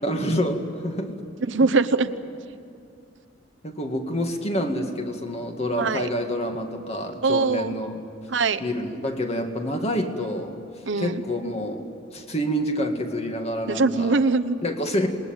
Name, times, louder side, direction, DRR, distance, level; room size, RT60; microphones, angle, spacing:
voice 1, 0.0-1.1 3.6-8.0 8.6-10.6 11.0-11.8 12.1-14.2 14.6-15.1, equal, 35° left, 4 dB, 2.1 m, -27 dB
voice 2, 1.5-2.1 5.8-6.1 7.2-7.7 8.3-8.6 10.9-11.2 13.7-14.6, right 4 dB, 85° right, 10 dB, 0.9 m, -22 dB
27.0 x 20.5 x 9.0 m, 2.4 s
head